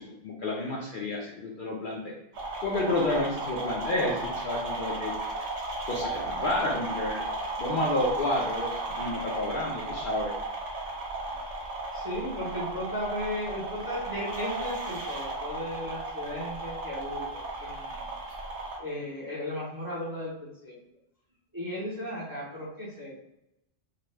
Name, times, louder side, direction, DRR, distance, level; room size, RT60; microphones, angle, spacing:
voice 1, 0.0-2.1 2.6-5.1 5.9-7.3 7.6-10.3, left 2 dB, 60° left, -3 dB, 0.6 m, -30 dB
sound 1, 2.3-18.8, right 2 dB, 90° right, 1.1 m, -35 dB
voice 2, 11.9-18.1 18.8-20.8 21.5-23.2, left 1 dB, 20° right, -5 dB, 0.6 m, -36 dB
2.8 x 2.2 x 3.2 m, 0.85 s
omnidirectional pair, 1.2 m